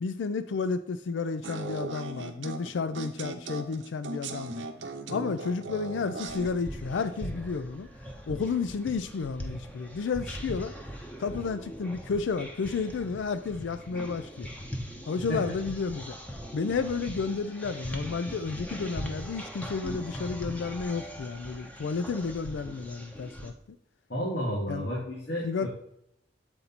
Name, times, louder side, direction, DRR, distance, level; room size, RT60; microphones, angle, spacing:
voice 1, 0.0-4.6 5.1-7.9 8.3-10.7 11.2-14.5 15.1-16.2 16.5-23.5 24.7-24.9 25.4-25.7, left 4 dB, 85° left, 0.4 m, -31 dB
sound 1, 1.4-6.5, right 3 dB, 80° right, 0.8 m, -38 dB
sound 2, 6.2-23.5, equal, 10° left, 0.9 m, -40 dB
voice 2, 24.1-25.7, equal, 60° left, 1.9 m, -32 dB
7.9 x 4.3 x 4.1 m
head